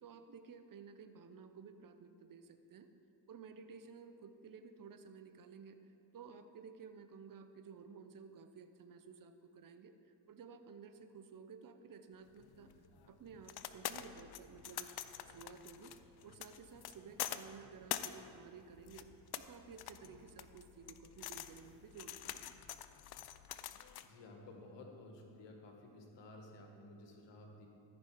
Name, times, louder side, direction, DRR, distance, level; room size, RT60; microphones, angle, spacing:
voice 1, 0.0-2.9 3.3-12.7 13.1-14.9 15.3-19.1 19.4-22.6, right 5 dB, 50° right, 9 dB, 0.8 m, -54 dB
sound 1, 12.1-12.2 12.5-13.7 14.0-14.8 15.2-18.2 18.5-19.4 19.6-20.4 20.8-22.6, left 2 dB, 45° left, 1.8 m, -69 dB
sound 2, 12.4-24.1, left 12 dB, 60° left, 0.5 m, -46 dB
voice 2, 24.0-27.7, left 2 dB, 80° left, 2 dB, 1.5 m, -54 dB
13.5 x 5.4 x 4.6 m, 2.7 s
cardioid pair, 70°, 43 cm